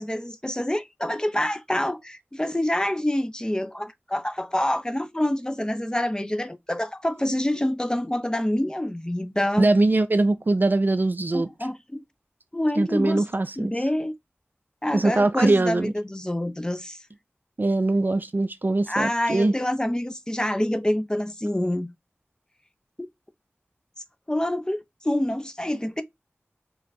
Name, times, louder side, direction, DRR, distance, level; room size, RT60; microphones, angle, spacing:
voice 1, 0.0-9.7 11.3-12.0 12.5-13.3 13.6-14.1 14.8-17.0 18.9-21.9 23.0-23.1 24.3-26.0, left 1 dB, 15° left, 0.6 m, -27 dB
voice 2, 9.6-11.5 12.8-13.7 14.9-15.9 17.6-19.5, right 2 dB, 45° right, 0.4 m, -22 dB
4.6 x 2.4 x 4.0 m
wide cardioid pair, 50°, 4 cm